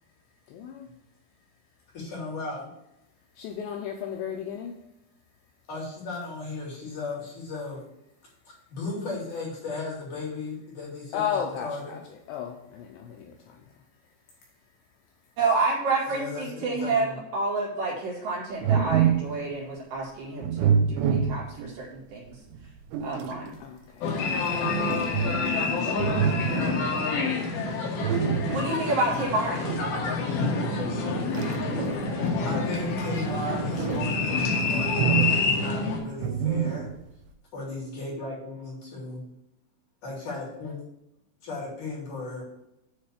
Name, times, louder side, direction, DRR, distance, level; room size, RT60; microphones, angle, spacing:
voice 1, 0.5-1.0 3.4-4.8 11.1-12.0 12.3-13.6 23.6-24.1 24.4-24.5, left 8 dB, 80° left, 2.5 m, -34 dB
voice 2, 1.9-2.7 5.7-7.9 8.4-12.0 16.1-17.2 26.4-26.9 32.4-36.9 37.5-39.2 40.0-40.8 41.4-42.4, left 3 dB, 45° left, 3.4 m, -36 dB
voice 3, 15.4-22.3 23.0-23.6 28.5-29.6, right 3 dB, 60° right, 3.7 m, -29 dB
sound 1, 18.6-19.4 20.4-21.7 22.5-23.4 24.6-25.6 26.0-26.8 28.0-28.8 29.6-29.9 31.0-32.2 33.0-34.2 34.8-35.6 36.2-37.1, right 8 dB, 85° right, 3.0 m, -27 dB
sound 2, 24.0-36.0, left 3 dB, 65° left, 3.0 m, -27 dB
9.8 x 3.3 x 6.8 m
omnidirectional pair, 5.4 m